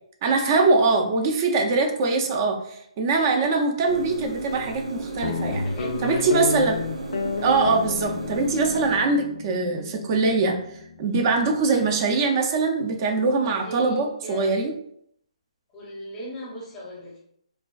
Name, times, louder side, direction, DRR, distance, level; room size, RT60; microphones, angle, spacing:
voice 1, 0.2-2.6 3.0-5.6 6.0-6.8 7.4-10.6 11.0-14.7, right 3 dB, 35° right, 3 dB, 0.4 m, -22 dB
sound 1, 3.9-9.0, right 2 dB, 85° right, 0.5 m, -34 dB
Guitar, 5.2-11.9, left 4 dB, 70° left, 0.3 m, -32 dB
voice 2, 5.5-6.6 13.6-14.5 15.7-17.2, left 1 dB, 15° left, -4 dB, 0.7 m, -38 dB
2.3 x 2.3 x 2.3 m, 0.71 s
hypercardioid pair, 150°, 3 cm